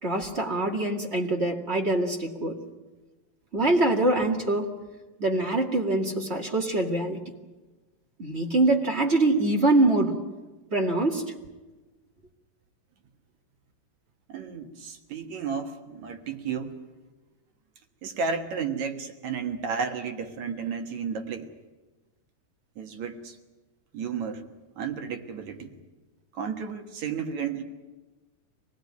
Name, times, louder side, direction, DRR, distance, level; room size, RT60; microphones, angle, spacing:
voice 1, 0.0-2.6 3.5-4.7 5.2-7.2 8.2-10.1 10.7-11.2, right 2 dB, 25° right, 1.6 m, -24 dB
voice 2, 14.3-16.8 18.0-21.5 22.8-23.4 23.9-24.4 24.8-25.8 26.3-27.6, right 6 dB, 60° right, 2.5 m, -32 dB
25.5 x 18.5 x 9.5 m
omnidirectional pair, 4.1 m